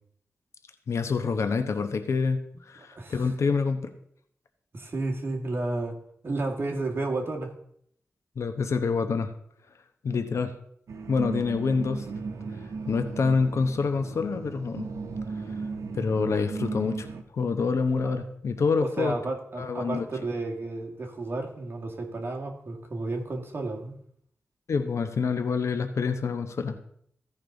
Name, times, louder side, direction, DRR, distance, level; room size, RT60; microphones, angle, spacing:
voice 1, 0.9-3.9 8.4-9.3 10.0-10.5 11.1-12.1 12.9-14.9 15.9-17.1 17.3-19.1 19.6-20.1 24.7-26.8, left 5 dB, 70° left, 8 dB, 0.9 m, -27 dB
voice 2, 2.8-3.3 4.7-6.0 6.2-7.5 18.0-18.2 18.8-23.9, right 2 dB, 45° right, 1 dB, 1.8 m, -32 dB
sound 1, 10.9-17.2, right 4 dB, 85° right, 0.9 m, -36 dB
15.5 x 5.4 x 3.9 m, 0.66 s
wide cardioid pair, 95°, 5 cm